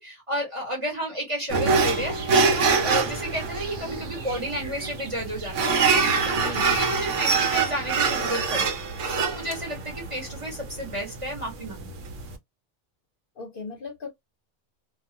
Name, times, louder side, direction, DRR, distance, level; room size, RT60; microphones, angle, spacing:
voice 1, 0.0-5.8 6.2-8.7 9.2-11.9, right 1 dB, 30° right, 0.9 m, -32 dB
sound 1, 1.5-12.3, right 4 dB, 80° right, 0.9 m, -25 dB
sound 2, 1.9-6.9, right 3 dB, 55° right, 0.9 m, -43 dB
voice 2, 6.3-6.8 13.4-14.1, left 3 dB, 55° left, 0.7 m, -37 dB
2.2 x 2.2 x 2.6 m
omnidirectional pair, 1.3 m